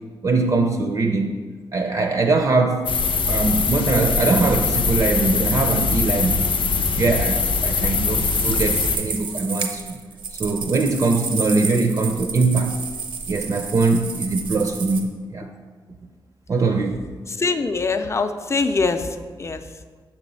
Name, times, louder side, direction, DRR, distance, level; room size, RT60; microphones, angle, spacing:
voice 1, 0.2-1.4 1.7-2.9 3.3-6.5 7.0-10.0 10.4-12.8 13.3-15.5 16.5-17.0, right 3 dB, 45° right, 5 dB, 0.4 m, -21 dB
sound 1, 2.9-9.0, left 4 dB, 80° left, 0.5 m, -22 dB
sound 2, 8.1-15.0, right 5 dB, 80° right, 0.7 m, -31 dB
voice 2, 17.3-19.1 19.4-19.6, left 4 dB, 35° left, 8 dB, 0.5 m, -23 dB
6.1 x 4.1 x 5.4 m, 1.5 s
cardioid pair, 85°, 9 cm